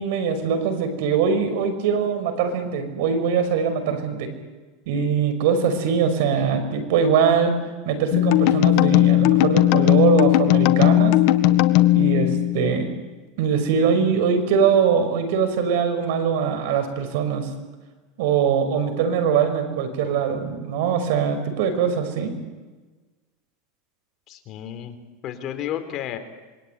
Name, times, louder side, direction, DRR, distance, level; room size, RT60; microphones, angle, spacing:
voice 1, 0.0-4.3 4.9-7.5 7.9-11.2 11.9-12.9 13.4-17.5 18.2-22.3, right 6 dB, 70° right, 8 dB, 5.7 m, -22 dB
sound 1, 8.1-13.0, left 15 dB, 60° left, 1.6 m, -17 dB
voice 2, 24.3-25.0 25.2-26.2, left 11 dB, 40° left, 7 dB, 3.7 m, -31 dB
26.5 x 23.0 x 9.5 m, 1.3 s
supercardioid pair, 145°, 0 cm